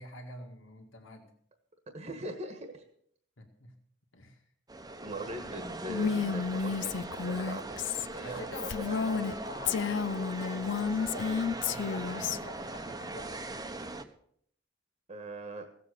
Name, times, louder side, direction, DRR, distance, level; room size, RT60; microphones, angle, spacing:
voice 1, 0.0-1.3 3.4-3.7 4.1-4.4 8.2-13.6, left 1 dB, 85° left, 2 dB, 1.9 m, -46 dB
voice 2, 1.9-2.8 5.0-9.2 15.1-15.6, right 2 dB, 35° right, 5 dB, 1.5 m, -41 dB
sound 1, 4.7-14.0, right 2 dB, 20° right, 1.0 m, -40 dB
Female speech woman speaking, 5.9-9.3 9.7-12.4, left 6 dB, 65° left, 0.5 m, -31 dB
16.5 x 7.7 x 6.7 m, 0.65 s
head